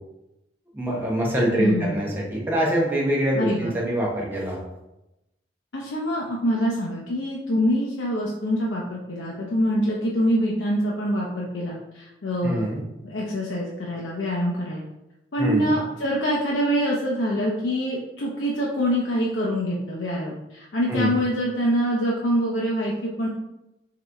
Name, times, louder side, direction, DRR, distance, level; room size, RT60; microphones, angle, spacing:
voice 1, 0.7-4.6 12.4-12.8 15.4-15.7 20.9-21.1, right 1 dB, 10° right, -4 dB, 0.9 m, -24 dB
voice 2, 1.5-2.0 3.3-3.7 5.7-12.7 13.0-14.8 15.3-23.3, equal, 80° left, -3 dB, 0.6 m, -25 dB
3.8 x 3.1 x 3.4 m, 0.93 s
head